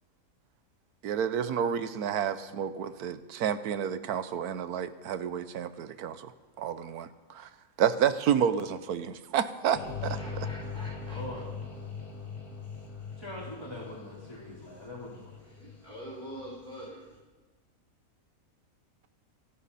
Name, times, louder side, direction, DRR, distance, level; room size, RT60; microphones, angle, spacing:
voice 1, 1.0-6.3 6.6-7.5 7.8-10.2, right 8 dB, 85° right, 12 dB, 1.3 m, -30 dB
sound 1, 9.7-16.9, left 5 dB, 80° left, 3.1 m, -41 dB
voice 2, 10.2-11.4 15.4-17.0, equal, 30° right, -6 dB, 3.4 m, -45 dB
voice 3, 11.1-11.5 13.2-15.4, left 1 dB, 15° left, -8 dB, 4.1 m, -42 dB
27.5 x 11.5 x 4.2 m, 1.3 s
omnidirectional pair, 1.6 m